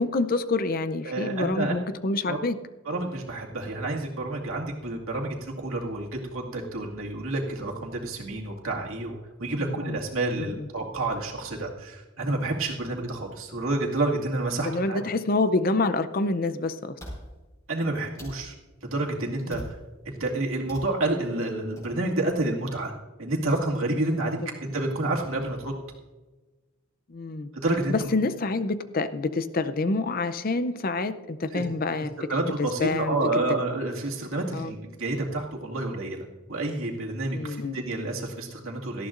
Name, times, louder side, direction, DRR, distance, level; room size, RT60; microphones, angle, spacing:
voice 1, 0.0-2.6 9.6-10.0 10.4-10.7 14.6-17.0 19.4-19.7 24.2-24.3 27.1-27.5 27.9-32.1 32.6-33.4 34.5-34.7 37.3-37.8, left 3 dB, 45° left, 12 dB, 0.6 m, -27 dB
voice 2, 1.1-1.7 2.3-2.4 2.9-15.0 17.7-18.5 18.9-19.8 20.0-22.9 23.2-25.7 27.6-28.1 31.5-31.6 32.2-39.1, right 2 dB, 75° right, -1 dB, 2.2 m, -29 dB
sound 1, 16.1-16.2 17.0-17.2 18.2-18.4 19.5-19.8 20.7-20.9 21.8-21.9, equal, 15° left, 4.4 m, -40 dB
18.0 x 13.0 x 2.6 m, 1.2 s
head